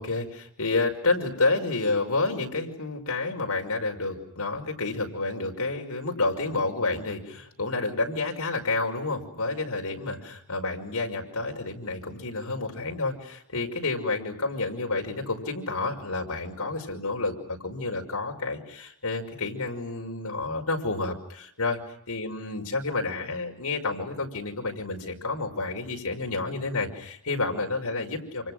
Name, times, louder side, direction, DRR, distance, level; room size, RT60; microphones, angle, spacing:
voice 1, 0.0-21.8 22.1-28.5, left 3 dB, 80° left, 2 dB, 5.6 m, -29 dB
28.5 x 27.5 x 6.4 m, 0.76 s
head